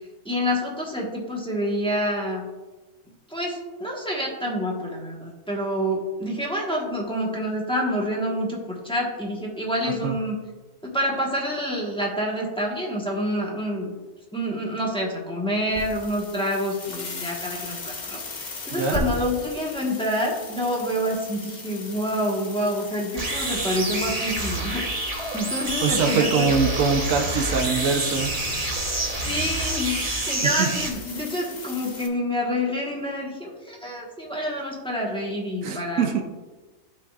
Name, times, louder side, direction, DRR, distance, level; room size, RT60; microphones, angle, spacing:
voice 1, 0.2-2.5 3.3-10.4 10.8-13.9 14.3-26.5 29.2-36.1, equal, 5° left, -3 dB, 1.1 m, -27 dB
voice 2, 9.8-10.2 18.7-19.0 25.8-28.3 30.4-30.7 35.6-36.2, right 5 dB, 75° right, 5 dB, 1.1 m, -23 dB
sound 1, 15.7-32.1, left 2 dB, 40° left, 0.8 m, -38 dB
sound 2, 23.2-30.9, right 2 dB, 30° right, 1.1 m, -28 dB
11.5 x 4.3 x 2.4 m, 1.2 s
omnidirectional pair, 1.5 m